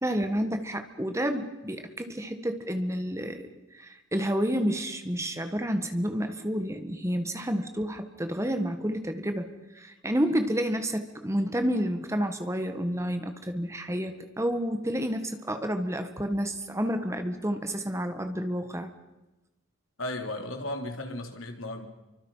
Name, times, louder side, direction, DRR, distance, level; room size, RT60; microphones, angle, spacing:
voice 1, 0.0-3.5 3.7-9.5 9.7-18.9, equal, 15° right, 7 dB, 1.6 m, -30 dB
voice 2, 20.0-21.9, left 1 dB, 85° left, 4 dB, 3.6 m, -35 dB
29.5 x 24.5 x 5.7 m, 1.0 s
head